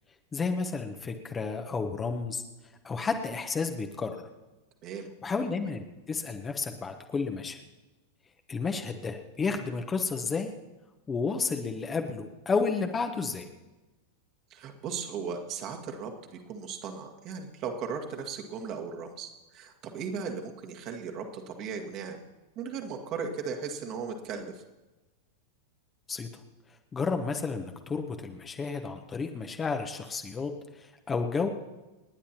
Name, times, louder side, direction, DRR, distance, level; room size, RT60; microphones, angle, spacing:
voice 1, 0.3-2.4 2.8-4.2 5.2-7.6 8.5-10.5 11.1-13.5 26.1-26.3 26.9-31.5, left 4 dB, 20° left, 4 dB, 1.0 m, -31 dB
voice 2, 14.5-22.2 22.6-24.6, right 6 dB, 40° right, 2 dB, 1.8 m, -37 dB
29.5 x 10.0 x 2.9 m, 1.1 s
figure-of-eight pair, 90°, 0 cm